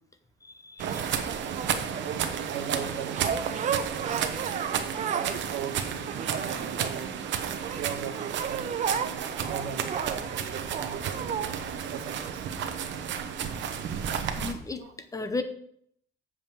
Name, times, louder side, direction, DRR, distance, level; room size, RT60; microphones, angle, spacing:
voice 1, 0.4-1.1 14.4-14.8 15.1-15.4, left 3 dB, 15° left, 9 dB, 0.6 m, -34 dB
sound 1, 0.8-2.2 3.1-5.4 5.8-7.2 7.6-11.5 12.2-12.3, right 7 dB, 35° right, 0.6 m, -34 dB
sound 2, 0.8-14.5, right 8 dB, 65° right, 0.9 m, -32 dB
voice 2, 2.0-3.3 3.9-4.7 5.1-7.2 7.6-11.2 11.8-12.5 14.8-14.9, right 7 dB, 90° right, 6 dB, 1.2 m, -39 dB
sound 3, 9.3-14.7, right 2 dB, 15° right, 1.3 m, -51 dB
7.3 x 5.1 x 7.1 m, 0.68 s
cardioid pair, 175°, 20 cm